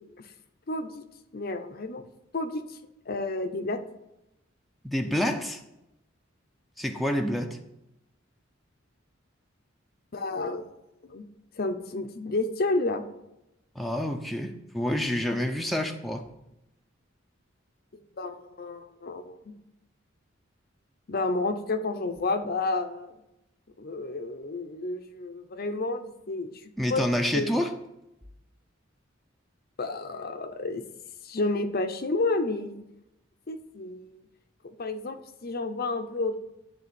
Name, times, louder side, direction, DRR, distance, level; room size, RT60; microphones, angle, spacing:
voice 1, 0.7-1.1 1.3-2.0 2.3-2.8 3.1-3.8 10.1-10.6 11.1-11.2 11.6-13.0 17.9-19.5 21.1-23.1 23.8-27.0 27.3-27.5 29.8-30.8 31.2-32.8 33.5-34.2 34.6-36.4, left 2 dB, 50° left, 7 dB, 0.7 m, -31 dB
voice 2, 4.8-5.6 6.8-7.6 13.8-16.2 26.8-27.7, equal, ahead, 2 dB, 0.6 m, -28 dB
11.0 x 3.6 x 6.9 m, 0.89 s
head